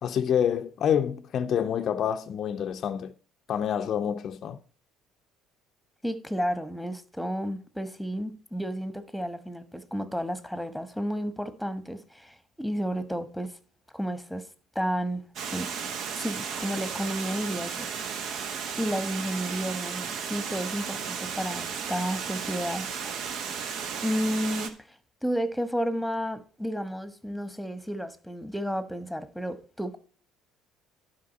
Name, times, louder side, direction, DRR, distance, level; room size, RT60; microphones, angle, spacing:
voice 1, 0.0-3.1 3.5-4.6, left 8 dB, 50° left, 0.6 m, -27 dB
voice 2, 6.0-13.5 13.9-14.4 14.7-15.2 15.5-15.7 16.1-17.9 18.8-23.2 24.0-24.7 25.2-30.0, equal, ahead, 1.2 m, -32 dB
Water, 15.4-24.7, right 6 dB, 60° right, 1.0 m, -34 dB
11.5 x 5.2 x 4.2 m
hypercardioid pair, 60°, 0 cm